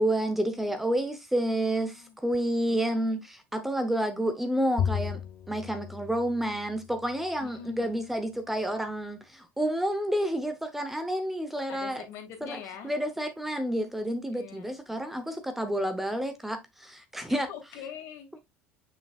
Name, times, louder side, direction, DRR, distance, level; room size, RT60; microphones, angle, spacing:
voice 1, 0.0-12.0 12.4-12.6 12.8-17.5, right 1 dB, 5° right, 0.8 m, -29 dB
voice 2, 1.5-2.2 2.7-3.2 7.4-8.0 11.7-12.9 14.3-14.7 17.3-18.3, left 8 dB, 60° left, 2.3 m, -44 dB
Bowed string instrument, 4.8-7.3, left 8 dB, 45° left, 0.8 m, -34 dB
7.0 x 5.9 x 2.3 m
cardioid pair, 150°, 5 cm